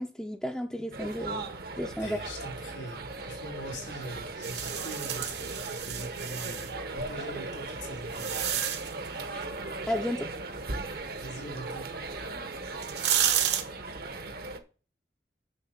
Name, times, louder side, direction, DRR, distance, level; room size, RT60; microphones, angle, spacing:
voice 1, 0.0-1.5 1.8-2.2 9.3-9.5 9.9-10.3, equal, 5° left, 2 dB, 0.4 m, -33 dB
sound 1, 0.9-14.6, right 3 dB, 55° right, 0.9 m, -38 dB
voice 2, 2.0-8.6 11.2-11.9, equal, 90° left, 1 dB, 3.1 m, -42 dB
sound 2, 4.4-6.7 7.5-9.1 12.1-12.2 12.7-13.6, right 10 dB, 75° right, 1.3 m, -30 dB
6.9 x 6.4 x 5.8 m, 0.38 s
head